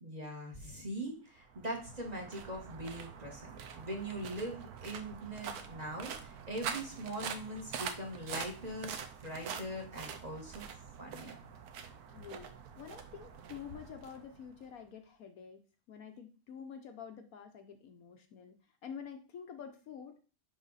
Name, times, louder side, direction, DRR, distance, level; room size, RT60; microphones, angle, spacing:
voice 1, 0.0-9.0 9.2-10.7 11.0-11.4, right 1 dB, 25° right, 1 dB, 1.6 m, -41 dB
sound 1, 1.4-14.8, right 7 dB, 70° right, 1.2 m, -45 dB
voice 2, 12.1-12.5 12.8-15.6 15.9-18.5 18.8-20.1, left 7 dB, 65° left, 5 dB, 1.1 m, -48 dB
10.0 x 3.6 x 4.0 m, 0.37 s
omnidirectional pair, 1.8 m